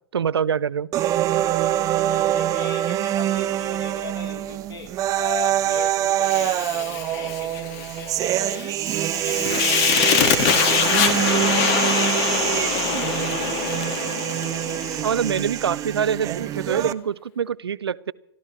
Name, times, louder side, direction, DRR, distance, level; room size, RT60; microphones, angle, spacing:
voice 1, 0.1-0.9 15.0-18.1, right 8 dB, 75° right, 0.5 m, -25 dB
sound 1, 0.9-16.9, right 13 dB, 25° right, 0.6 m, -25 dB
voice 2, 1.9-14.3, left 5 dB, 65° left, 3.3 m, -39 dB
Fire, 6.2-15.5, left 7 dB, 40° left, 1.8 m, -24 dB
29.0 x 13.5 x 3.1 m
figure-of-eight pair, 105°, 14 cm